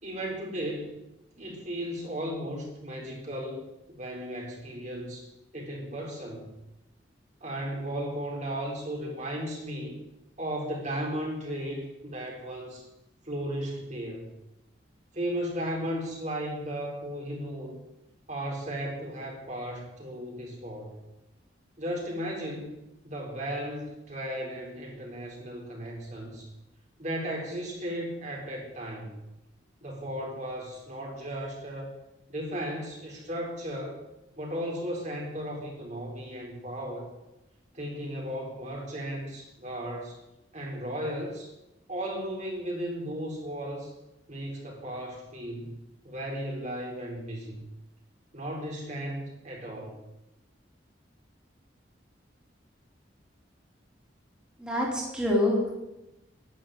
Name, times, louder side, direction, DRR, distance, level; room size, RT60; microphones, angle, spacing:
voice 1, 0.0-1.0 1.4-5.3 5.5-6.4 7.4-10.0 10.4-12.9 13.2-14.3 15.1-17.8 18.3-20.9 21.8-22.7 23.0-26.5 27.0-29.1 29.8-31.9 32.3-34.0 34.4-37.1 37.7-40.2 40.5-41.5 41.9-43.9 44.3-45.8 46.0-47.6 48.3-50.0, equal, 40° right, -1 dB, 4.3 m, -35 dB
voice 2, 54.6-55.7, left 1 dB, 5° right, -4 dB, 3.8 m, -26 dB
12.0 x 11.0 x 9.2 m, 0.94 s
head